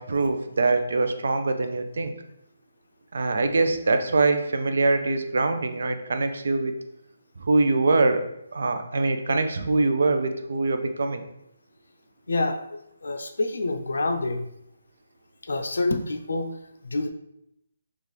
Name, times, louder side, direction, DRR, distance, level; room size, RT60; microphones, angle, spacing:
voice 1, 0.0-2.1 3.1-6.8 7.4-8.2 8.5-11.2, right 3 dB, 65° right, 7 dB, 0.5 m, -23 dB
voice 2, 12.3-14.5 15.5-16.5 16.8-17.1, left 2 dB, 80° left, 6 dB, 0.5 m, -27 dB
4.3 x 2.4 x 3.3 m, 0.80 s
hypercardioid pair, 165°, 0 cm